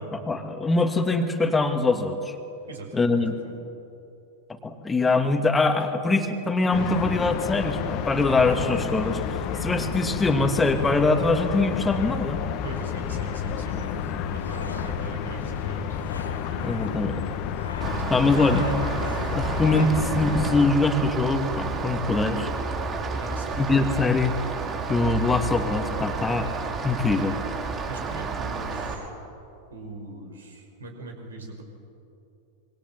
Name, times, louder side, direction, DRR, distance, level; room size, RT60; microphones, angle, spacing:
voice 1, 0.1-2.3 2.9-3.3 4.6-12.4 16.6-17.2 18.1-18.7 19.3-22.5 23.6-24.3 24.9-26.5 26.8-27.3, left 3 dB, 10° left, 6 dB, 2.4 m, -23 dB
voice 2, 2.7-3.6 12.6-16.0 23.1-23.7 27.8-29.1 29.7-31.6, right 2 dB, 70° right, 3 dB, 5.3 m, -40 dB
sound 1, 6.7-20.7, left 8 dB, 40° left, 1.8 m, -30 dB
sound 2, 12.6-19.9, left 3 dB, 80° left, 2.3 m, -41 dB
Rain, 17.8-28.9, right 4 dB, 25° right, 6.1 m, -31 dB
26.0 x 24.0 x 7.6 m, 2.8 s
figure-of-eight pair, 90°, 0 cm